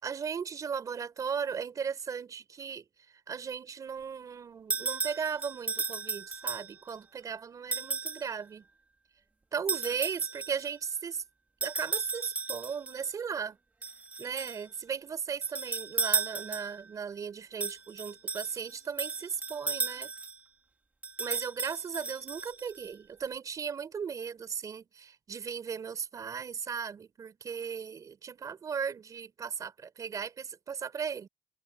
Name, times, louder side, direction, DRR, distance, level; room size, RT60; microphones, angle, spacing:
voice 1, 0.0-2.9 3.3-8.6 9.5-11.2 11.6-13.6 14.2-20.1 21.2-31.3, right 6 dB, 40° right, 4.2 m, -36 dB
sound 1, 4.7-6.9 7.7-8.3 9.7-10.7 11.6-13.0 13.8-14.6 15.4-16.9 17.6-20.4 21.0-22.8, right 4 dB, 15° right, 1.5 m, -35 dB
supercardioid pair, 95°, 9 cm